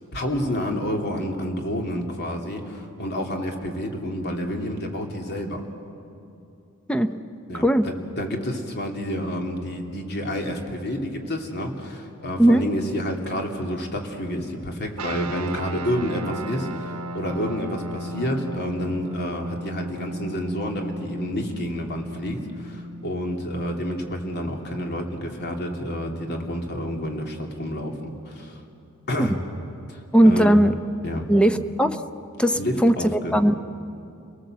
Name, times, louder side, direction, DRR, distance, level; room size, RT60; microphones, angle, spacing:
voice 1, 0.1-5.6 7.5-28.6 29.1-29.4 29.9-30.6 31.0-31.3 32.5-33.4, equal, 50° left, 2 dB, 2.8 m, -29 dB
sound 1, 15.0-25.6, right 1 dB, 85° right, 1.0 m, -36 dB
voice 2, 30.1-30.7 31.3-32.0 32.4-33.6, right 1 dB, 5° left, 9 dB, 0.8 m, -18 dB
29.5 x 19.0 x 7.7 m, 2.7 s
head